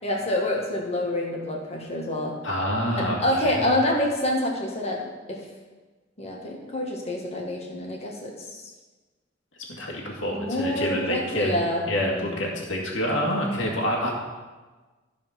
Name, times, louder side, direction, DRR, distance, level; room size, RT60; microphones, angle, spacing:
voice 1, 0.0-2.4 3.0-5.4 6.2-8.7 10.3-11.8 12.2-12.4, left 1 dB, 35° left, -1 dB, 1.8 m, -27 dB
voice 2, 2.4-3.7 9.7-11.5 11.9-14.1, equal, 75° left, -2 dB, 2.2 m, -27 dB
14.0 x 4.9 x 5.9 m, 1.3 s
head